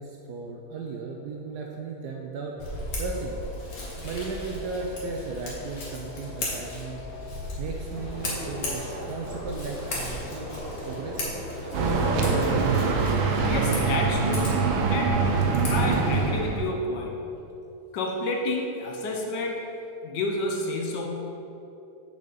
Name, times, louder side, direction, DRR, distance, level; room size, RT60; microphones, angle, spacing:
voice 1, 0.0-2.6 3.0-3.4 4.0-7.0 7.6-10.5 10.9-11.5, right 4 dB, 70° right, 1 dB, 1.0 m, -35 dB
Scissors, 2.6-16.3, left 2 dB, 50° left, 1.8 m, -37 dB
sound 1, 7.9-16.1, equal, 35° right, 2.1 m, -36 dB
sound 2, 11.7-16.7, right 4 dB, 90° right, 1.5 m, -24 dB
voice 2, 13.5-14.5 14.9-15.3 15.7-17.2 17.9-19.6 20.0-21.1, left 2 dB, 65° left, 1 dB, 1.4 m, -30 dB
6.7 x 6.4 x 4.0 m, 2.9 s
omnidirectional pair, 2.1 m